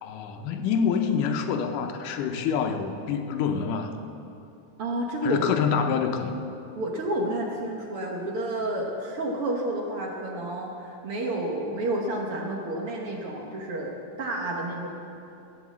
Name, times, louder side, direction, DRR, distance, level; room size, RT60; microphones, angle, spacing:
voice 1, 0.0-4.0 5.2-6.3, left 6 dB, 85° left, 6 dB, 2.4 m, -26 dB
voice 2, 4.8-5.4 6.8-13.9 14.2-14.9, right 1 dB, 55° right, -1 dB, 1.8 m, -30 dB
14.5 x 8.9 x 7.4 m, 2.7 s
omnidirectional pair, 3.6 m